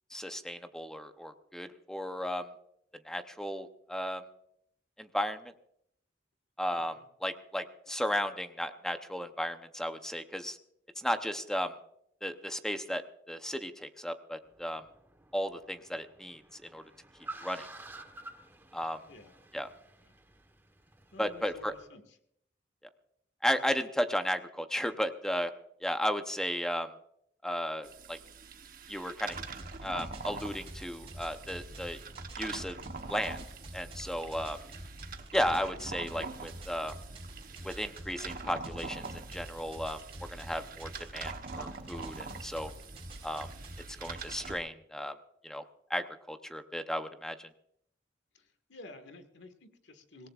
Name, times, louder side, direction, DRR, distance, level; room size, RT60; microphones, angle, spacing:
voice 1, 0.1-2.5 3.0-4.2 5.0-5.4 6.6-6.9 7.2-10.6 11.0-11.7 12.2-14.8 15.3-16.4 16.7-16.8 17.4-17.7 18.7-19.0 19.5-19.7 21.2-21.7 23.4-25.5 25.8-26.9 27.4-28.2 28.9-29.4 29.8-32.0 32.4-32.8 33.1-33.4 33.7-34.6 35.3-36.9 37.6-42.7 43.2-43.5 44.0-45.1 45.4-45.6 45.9-47.5, equal, 5° left, 8 dB, 0.7 m, -34 dB
Car, 14.5-21.8, right 2 dB, 15° right, 1.1 m, -51 dB
voice 2, 21.1-22.2 36.1-36.3 48.3-50.3, left 2 dB, 80° left, 8 dB, 1.7 m, -51 dB
sound 1, 27.8-44.6, right 4 dB, 50° right, 1.0 m, -45 dB
sound 2, 29.3-44.6, right 1 dB, 30° right, 4.0 m, -47 dB
25.0 x 17.5 x 2.4 m, 0.72 s
head